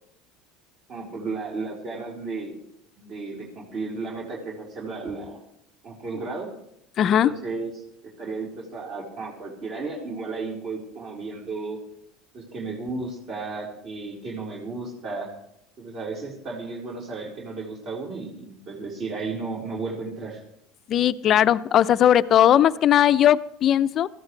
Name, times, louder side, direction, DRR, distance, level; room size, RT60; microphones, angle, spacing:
voice 1, 0.9-2.6 3.0-5.4 5.8-6.5 7.2-7.8 8.2-11.8 12.3-15.3 15.8-20.4, right 3 dB, 45° right, -3 dB, 4.2 m, -34 dB
voice 2, 7.0-7.3 20.9-24.1, left 10 dB, 40° left, 14 dB, 0.6 m, -18 dB
21.0 x 14.5 x 3.3 m, 0.76 s
supercardioid pair, 130°, 0 cm